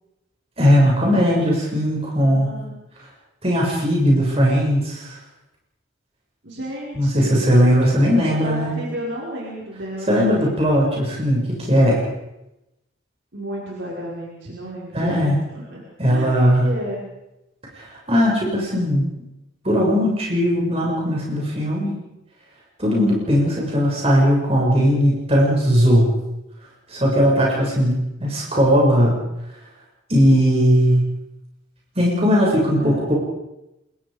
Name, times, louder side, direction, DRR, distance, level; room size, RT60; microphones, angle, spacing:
voice 1, 0.6-2.5 3.4-5.1 6.9-8.8 10.1-12.0 14.9-15.4 16.0-16.7 17.8-19.1 19.6-22.0 22.8-26.1 26.9-29.2 30.1-31.0 32.0-33.1, equal, 30° right, -3 dB, 7.0 m, -18 dB
voice 2, 2.2-2.7 6.4-7.5 8.4-10.7 13.3-17.1 32.8-33.1, right 1 dB, 70° right, -4 dB, 5.4 m, -33 dB
27.5 x 22.0 x 5.2 m, 0.91 s
head